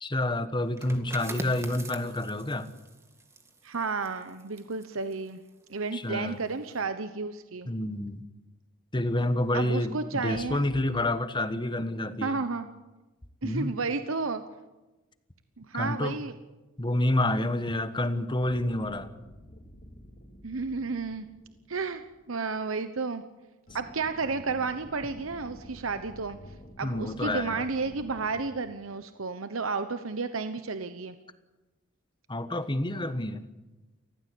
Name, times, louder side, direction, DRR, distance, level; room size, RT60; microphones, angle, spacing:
voice 1, 0.0-2.7 5.9-6.4 7.7-8.2 8.9-12.4 13.4-13.7 15.7-16.2 16.8-19.1 26.8-27.6 32.3-33.4, left 1 dB, 25° left, 11 dB, 1.4 m, -28 dB
sound 1, 0.7-6.2 6.5-6.8, right 1 dB, 15° right, 2.2 m, -44 dB
voice 2, 3.6-5.4 5.7-7.7 9.5-10.6 12.2-12.7 13.4-14.4 15.6-16.3 20.4-21.3 21.7-23.2 23.7-26.4 26.8-31.1, right 4 dB, 80° right, 10 dB, 1.0 m, -32 dB
sound 2, 18.4-22.7 23.7-28.5, equal, 45° left, 3.5 m, -50 dB
29.5 x 14.5 x 8.5 m, 1.1 s
head